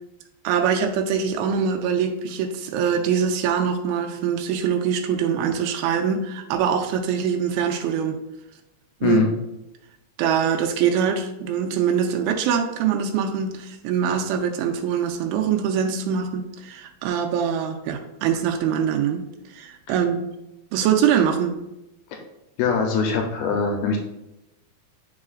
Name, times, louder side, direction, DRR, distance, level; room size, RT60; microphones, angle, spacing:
voice 1, 0.4-8.2 9.0-9.2 10.2-19.2 19.5-20.3 20.7-21.6, right 7 dB, 90° right, 4 dB, 2.5 m, -23 dB
voice 2, 22.6-24.0, left 5 dB, 85° left, 2 dB, 2.7 m, -22 dB
8.4 x 4.8 x 2.4 m, 0.91 s
omnidirectional pair, 4.3 m